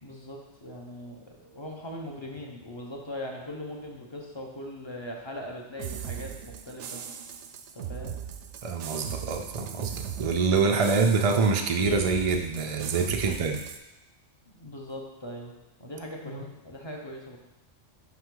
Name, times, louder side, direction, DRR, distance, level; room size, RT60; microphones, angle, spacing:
voice 1, 0.0-7.0 7.7-8.2 13.2-13.4 14.5-15.5 15.8-17.4, left 1 dB, 25° left, -1 dB, 0.7 m, -40 dB
sound 1, 5.8-13.8, right 8 dB, 75° right, 0.9 m, -39 dB
voice 2, 8.6-9.9 10.2-13.6, right 4 dB, 60° right, 3 dB, 0.3 m, -25 dB
5.8 x 5.2 x 3.8 m, 1.0 s
omnidirectional pair, 1.2 m